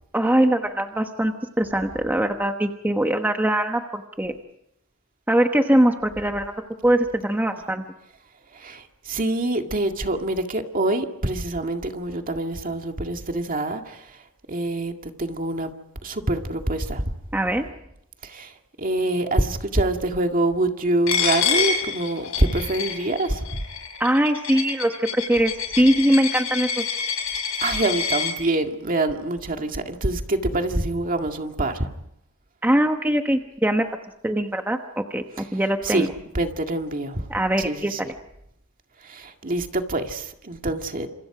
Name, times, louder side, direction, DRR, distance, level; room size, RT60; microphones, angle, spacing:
voice 1, 0.1-4.4 5.3-6.5 6.8-7.8 17.3-17.6 24.0-26.8 32.6-33.9 34.2-35.2 35.5-36.1 37.3-38.1, right 1 dB, 10° right, 4 dB, 1.2 m, -22 dB
voice 2, 8.5-15.7 16.0-17.1 18.2-23.6 27.6-31.9 35.4-35.5 35.8-36.1 36.3-37.3 37.6-38.0 39.0-41.1, right 2 dB, 40° right, 4 dB, 2.0 m, -25 dB
Coin (dropping), 21.1-28.3, left 6 dB, 70° left, 5.1 m, -27 dB
29.5 x 27.0 x 5.0 m, 0.79 s
head